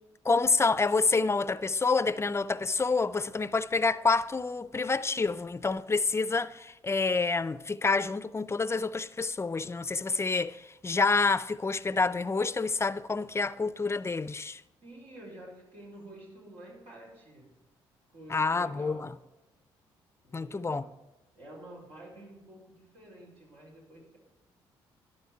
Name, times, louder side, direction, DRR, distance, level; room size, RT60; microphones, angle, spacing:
voice 1, 0.2-14.6 18.3-19.1 20.3-20.8, left 4 dB, 25° left, 0.5 m, -28 dB
voice 2, 14.8-17.5 18.1-19.1 20.2-20.9 21.3-24.2, right 1 dB, 70° right, 4.5 m, -49 dB
12.0 x 12.0 x 4.7 m
supercardioid pair, 55°, 11 cm